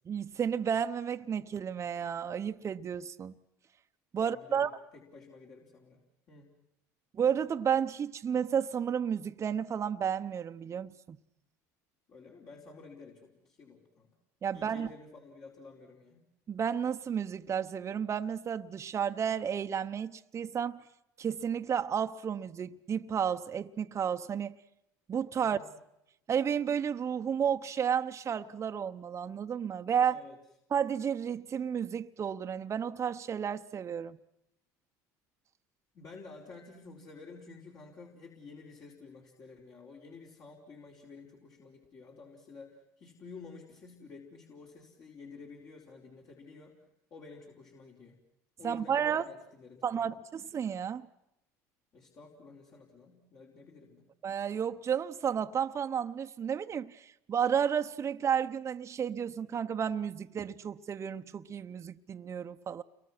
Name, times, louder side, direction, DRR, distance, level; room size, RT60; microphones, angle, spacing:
voice 1, 0.1-3.3 4.1-4.7 7.1-11.2 14.4-14.9 16.5-20.8 21.2-24.5 25.1-25.7 26.3-30.2 30.7-34.2 48.6-49.3 49.8-51.1 54.2-62.8, right 8 dB, 35° right, 0.9 m, -32 dB
voice 2, 4.2-6.0 6.3-6.5 12.1-14.1 14.5-16.2 25.4-25.7 30.1-30.3 35.9-46.8 47.1-48.2 48.6-50.2 51.9-54.0, left 4 dB, 50° left, 4.6 m, -51 dB
29.5 x 23.0 x 6.1 m
supercardioid pair, 85°, 8 cm